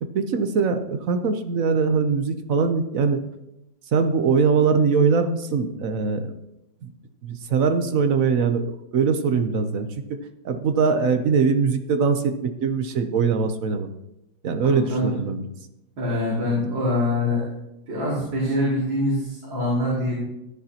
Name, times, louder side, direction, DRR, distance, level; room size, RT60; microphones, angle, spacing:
voice 1, 0.0-3.2 3.9-6.3 6.8-6.9 7.2-10.2 10.4-13.9 14.4-15.4, right 5 dB, 55° right, 7 dB, 1.0 m, -22 dB
voice 2, 14.6-15.1 16.0-17.4 17.9-20.2, left 1 dB, 75° right, -6 dB, 3.5 m, -24 dB
14.5 x 11.0 x 2.9 m, 0.86 s
omnidirectional pair, 2.1 m